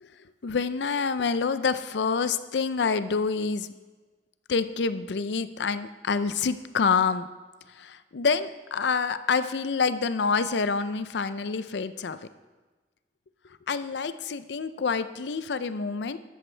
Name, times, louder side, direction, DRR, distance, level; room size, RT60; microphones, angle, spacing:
voice 1, 0.4-3.7 4.5-7.3 7.7-12.2 13.7-16.2, left 5 dB, 80° left, 13 dB, 0.5 m, -27 dB
14.0 x 12.0 x 3.3 m, 1.3 s
head